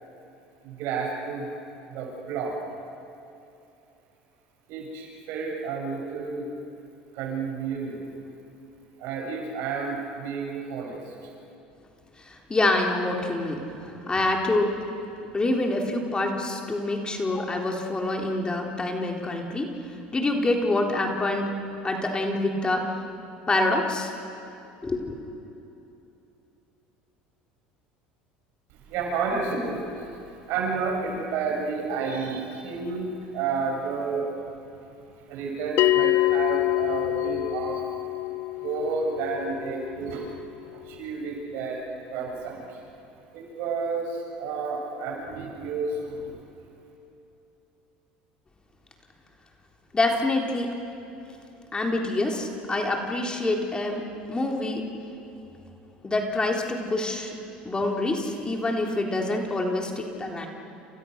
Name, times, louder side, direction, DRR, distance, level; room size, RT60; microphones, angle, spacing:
voice 1, 0.6-1.5 1.9-2.6 4.7-6.5 7.1-8.0 9.0-11.1 28.9-30.1 30.5-34.3 35.3-37.8 38.6-40.3 40.7-41.8 42.1-42.8 43.3-46.4, right 4 dB, 65° right, 0 dB, 7.8 m, -31 dB
voice 2, 12.5-14.7 15.3-19.7 20.1-21.5 21.8-22.9 23.5-24.1 24.8-25.2 49.9-50.7 51.7-54.0 54.3-54.8 56.0-57.3 57.7-60.5, left 2 dB, 20° left, 1 dB, 3.8 m, -26 dB
Bell, 35.8-40.8, left 18 dB, 60° left, 0.8 m, -26 dB
29.5 x 28.5 x 6.7 m, 2.9 s
hypercardioid pair, 80°, 4 cm